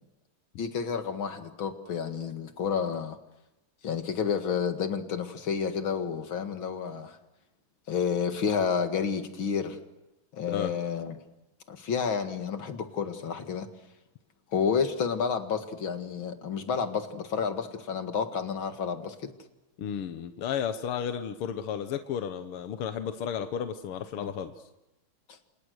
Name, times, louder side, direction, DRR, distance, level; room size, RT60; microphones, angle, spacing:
voice 1, 0.6-3.2 3.8-7.2 7.9-9.8 10.3-11.2 11.7-13.7 14.5-19.2 24.2-24.3, left 6 dB, 65° left, 7 dB, 2.7 m, -30 dB
voice 2, 19.8-24.5, left 8 dB, 80° left, 9 dB, 2.0 m, -33 dB
29.5 x 26.5 x 6.5 m, 0.98 s
omnidirectional pair, 2.4 m